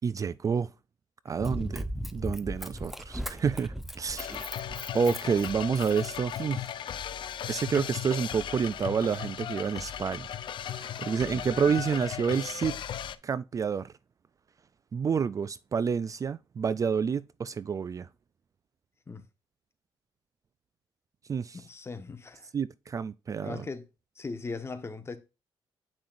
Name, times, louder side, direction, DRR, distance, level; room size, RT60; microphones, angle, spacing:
voice 1, 0.0-0.7 1.3-1.8 2.1-4.6 4.9-6.7 7.5-10.3 10.7-12.8 13.2-13.9 14.9-18.1 21.3-21.6 22.5-23.7, right 6 dB, 35° right, 0.3 m, -29 dB
Run, 1.4-6.7 7.2-7.3, equal, ahead, 0.7 m, -38 dB
voice 2, 1.6-1.9 11.2-11.4 19.1-19.2 21.5-22.5 23.4-23.8 24.2-25.2, left 4 dB, 30° left, 1.2 m, -39 dB
sound 1, 4.2-13.2, left 9 dB, 60° left, 0.5 m, -37 dB
8.6 x 5.8 x 2.5 m
cardioid pair, 80°, 9 cm